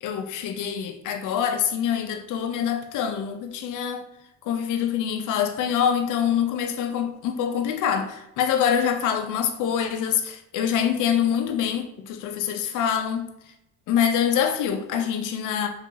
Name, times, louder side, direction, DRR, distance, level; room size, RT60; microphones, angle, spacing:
voice 1, 0.0-4.1 4.4-13.3 13.9-15.7, left 8 dB, 85° left, 0.6 m, -25 dB
3.9 x 2.8 x 3.7 m
cardioid pair, 90°, 30 cm